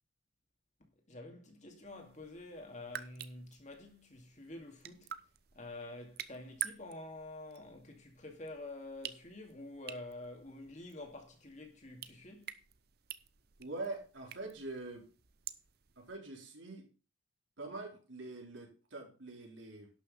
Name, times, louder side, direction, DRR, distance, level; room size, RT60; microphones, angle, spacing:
voice 1, 1.1-5.1 5.5-12.5, left 2 dB, 40° left, 2.4 m, -48 dB
sound 1, 1.8-16.2, right 10 dB, 55° right, 0.7 m, -49 dB
voice 2, 13.6-15.1 16.0-16.9 17.6-19.9, right 2 dB, 75° right, 4.0 m, -44 dB
11.5 x 6.4 x 5.6 m
head